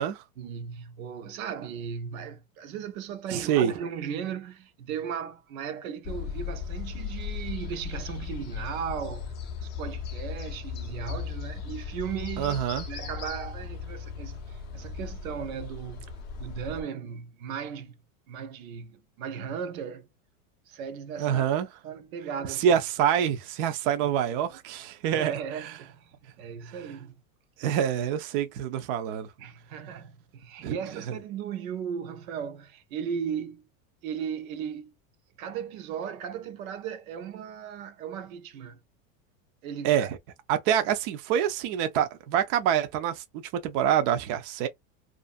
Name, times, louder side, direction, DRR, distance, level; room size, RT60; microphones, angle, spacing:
voice 1, 0.4-9.4 9.6-16.1 16.4-18.0 18.3-20.1 20.7-21.5 21.8-22.8 24.0-24.6 25.1-27.2 29.4-33.6 34.0-34.9 35.4-38.8 39.6-40.1, right 7 dB, 75° right, 0.7 m, -37 dB
voice 2, 3.3-3.7 12.4-12.9 21.2-21.7 22.6-25.3 27.6-29.3 30.6-30.8 39.8-40.2 40.5-44.7, right 9 dB, 40° right, 0.4 m, -26 dB
sound 1, 6.0-16.8, left 6 dB, 25° left, 0.4 m, -37 dB
2.5 x 2.4 x 2.4 m
supercardioid pair, 150°, 42 cm